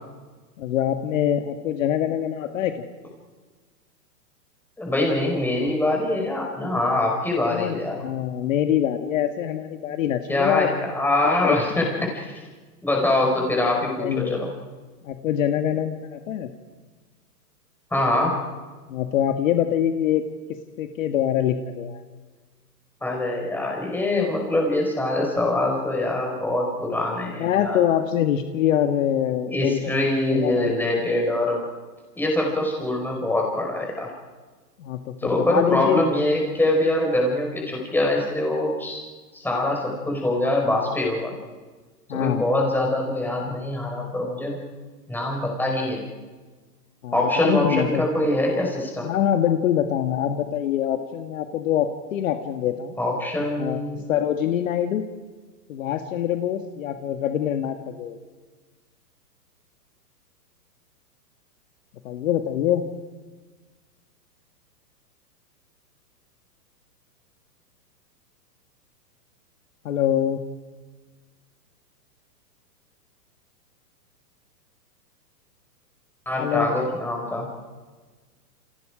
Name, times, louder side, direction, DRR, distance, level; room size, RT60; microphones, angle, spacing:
voice 1, 0.6-2.7 7.5-10.7 11.4-11.6 13.8-14.4 15.0-16.5 18.9-20.2 20.8-22.0 27.4-29.8 30.3-30.9 34.8-36.0 42.1-42.4 47.0-48.3 49.0-53.0 53.6-55.0 55.7-58.2 62.0-62.9 69.9-70.4 76.4-76.7, left 10 dB, 55° left, 6 dB, 1.7 m, -24 dB
voice 2, 4.8-8.0 10.3-12.4 12.8-14.5 17.9-18.4 23.0-27.8 29.5-31.6 32.1-34.1 35.2-39.0 39.3-41.4 42.1-44.6 45.1-46.0 47.1-49.1 53.0-54.0 76.2-77.5, left 1 dB, 5° left, -1 dB, 5.1 m, -24 dB
29.0 x 28.5 x 5.0 m, 1.4 s
hypercardioid pair, 150°, 48 cm